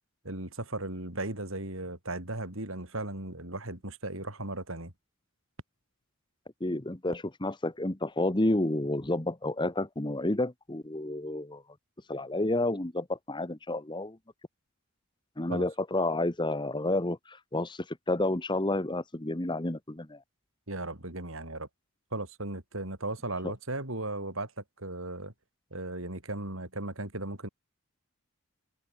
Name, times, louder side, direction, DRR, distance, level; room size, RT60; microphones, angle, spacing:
voice 1, 0.2-4.9 15.5-15.7 20.7-21.7 22.1-25.3 25.7-27.5, right 2 dB, 65° right, 5.6 m, -36 dB
voice 2, 6.6-11.6 12.1-14.2 15.4-20.2 23.4-23.5, left 1 dB, 20° left, 1.2 m, -30 dB
head